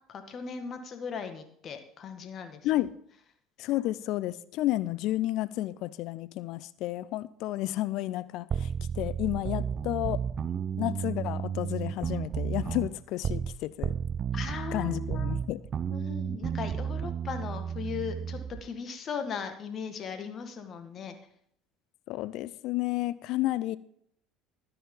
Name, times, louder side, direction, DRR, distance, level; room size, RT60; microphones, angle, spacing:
voice 1, 0.1-2.6 14.3-15.4 15.9-21.2, left 6 dB, 45° left, 1.8 m, -38 dB
voice 2, 3.6-10.2 10.8-14.0 14.7-15.6 22.1-23.8, left 16 dB, 60° left, 0.5 m, -31 dB
sound 1, 8.5-13.6 13.8-18.6, right 7 dB, 40° right, 0.8 m, -32 dB
12.5 x 10.0 x 3.8 m
hypercardioid pair, 65°, 0 cm